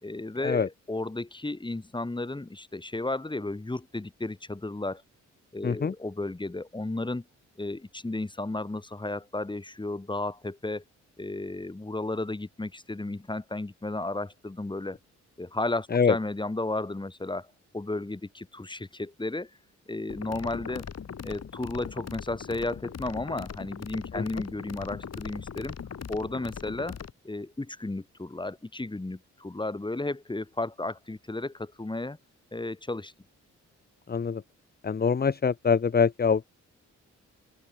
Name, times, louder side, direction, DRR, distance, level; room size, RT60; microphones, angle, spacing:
voice 1, 0.0-5.0 5.5-7.2 7.6-10.8 11.2-15.0 15.4-17.5 17.7-19.5 19.9-20.8 21.2-25.8 26.1-27.0 27.2-32.2 32.5-33.1, left 2 dB, 15° left, 2.1 m, -33 dB
voice 2, 5.6-5.9 15.9-16.2 24.1-24.4 34.1-34.4 34.8-36.5, left 6 dB, 30° left, 0.9 m, -24 dB
sound 1, 20.1-27.1, left 7 dB, 55° left, 3.2 m, -40 dB
open air
cardioid pair, 70°, 31 cm